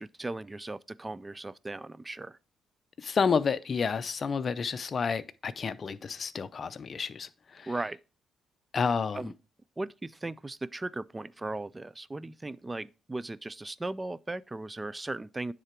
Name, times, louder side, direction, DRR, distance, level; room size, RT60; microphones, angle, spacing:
voice 1, 0.0-2.4 7.7-8.0 9.1-9.3 9.8-15.5, right 2 dB, 20° right, 0.3 m, -37 dB
voice 2, 3.0-7.7 8.7-9.3, left 5 dB, 45° left, 0.5 m, -30 dB
9.8 x 3.8 x 4.5 m
cardioid pair, 90°, 0 cm